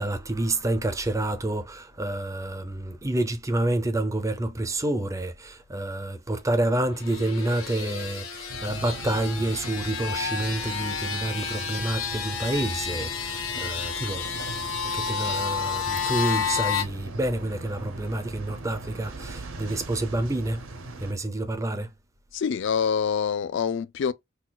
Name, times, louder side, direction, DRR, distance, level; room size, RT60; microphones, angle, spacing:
voice 1, 0.0-20.6 21.0-21.9, right 1 dB, 15° right, 0.5 m, -28 dB
sound 1, 6.9-16.8, left 6 dB, 80° left, 1.2 m, -31 dB
sound 2, 8.5-21.1, right 2 dB, 70° right, 0.6 m, -41 dB
voice 2, 22.3-24.1, left 6 dB, 60° left, 0.3 m, -26 dB
6.0 x 2.3 x 2.2 m
head